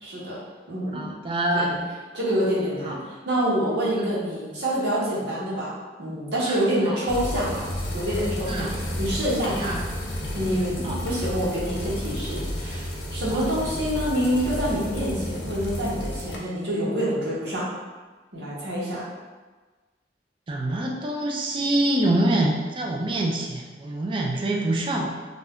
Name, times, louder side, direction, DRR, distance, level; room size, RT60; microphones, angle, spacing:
voice 1, 0.0-0.4 0.7-1.1 1.5-1.8 2.1-5.7 6.0-7.7 7.9-8.7 9.0-9.8 10.3-17.7 18.3-19.0, equal, 80° right, -7 dB, 0.9 m, -26 dB
voice 2, 0.9-1.8 2.9-3.0 6.5-6.6 6.9-7.0 8.5-8.7 9.6-9.8 10.8-11.0 13.3-13.5 20.5-25.1, right 1 dB, 30° right, 0 dB, 0.4 m, -25 dB
sound 1, 7.1-16.4, equal, 70° left, 0.5 m, -32 dB
2.5 x 2.2 x 3.5 m, 1.3 s
head